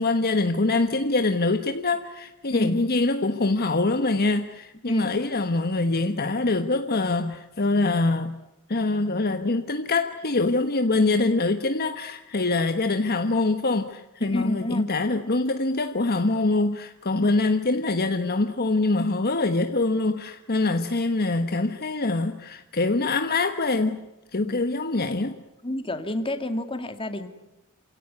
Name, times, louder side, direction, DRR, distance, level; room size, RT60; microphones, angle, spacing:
voice 1, 0.0-8.4 8.7-24.1 24.3-25.3, left 2 dB, 45° left, 1.3 m, -24 dB
voice 2, 14.2-14.8 24.4-24.6 25.6-27.3, left 1 dB, 25° left, 2.4 m, -29 dB
28.5 x 17.0 x 9.6 m
head